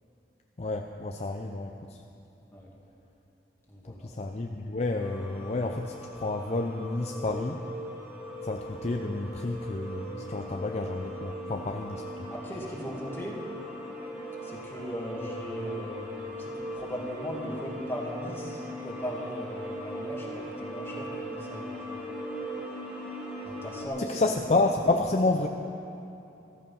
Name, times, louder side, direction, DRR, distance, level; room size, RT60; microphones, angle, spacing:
voice 1, 0.6-1.7 4.0-7.6 8.4-12.3 24.0-25.5, left 2 dB, 40° left, 3 dB, 0.6 m, -29 dB
voice 2, 3.7-4.1 12.3-13.4 14.4-16.1 16.4-21.8 23.4-24.2 24.5-24.7, equal, 15° left, -3 dB, 2.3 m, -38 dB
sound 1, 5.0-23.9, equal, 5° right, 1.8 m, -39 dB
14.0 x 14.0 x 5.5 m, 2.9 s
head